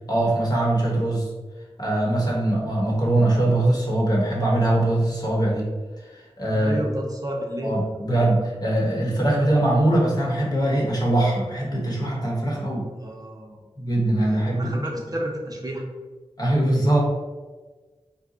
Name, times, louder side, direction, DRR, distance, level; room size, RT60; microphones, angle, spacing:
voice 1, 0.1-1.3 1.8-5.7 6.1-6.8 7.6-12.9 13.8-14.7 16.4-17.0, right 1 dB, 40° left, -3 dB, 1.2 m, -22 dB
voice 2, 6.5-7.7 13.0-13.6 14.2-15.8, right 1 dB, 35° right, -1 dB, 0.7 m, -31 dB
4.1 x 2.3 x 3.7 m, 1.3 s
wide cardioid pair, 80°, 11 cm